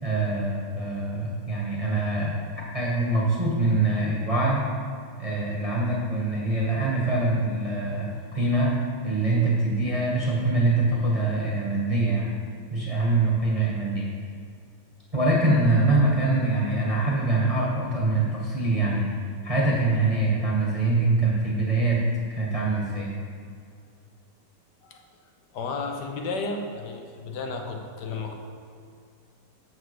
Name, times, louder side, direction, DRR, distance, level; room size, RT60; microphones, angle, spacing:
voice 1, 0.0-4.6 5.2-8.7 9.0-12.3 12.7-14.1 15.1-19.1 19.4-22.0 22.3-23.1, right 2 dB, 20° right, -5 dB, 1.2 m, -24 dB
voice 2, 25.5-28.3, left 3 dB, 65° left, 3 dB, 1.1 m, -33 dB
7.5 x 4.7 x 6.3 m, 2.4 s
omnidirectional pair, 2.4 m